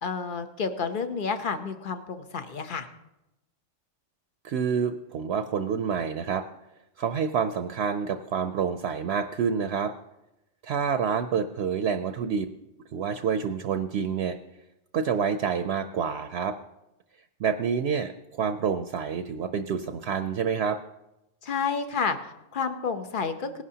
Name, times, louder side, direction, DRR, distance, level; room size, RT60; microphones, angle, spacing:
voice 1, 0.0-2.9 21.4-23.6, left 5 dB, 50° left, 8 dB, 1.0 m, -30 dB
voice 2, 4.4-6.4 7.0-9.9 10.6-12.5 12.9-14.4 14.9-16.6 17.4-20.8, right 6 dB, 65° right, 9 dB, 0.8 m, -28 dB
19.0 x 11.0 x 2.8 m, 0.92 s
omnidirectional pair, 1.2 m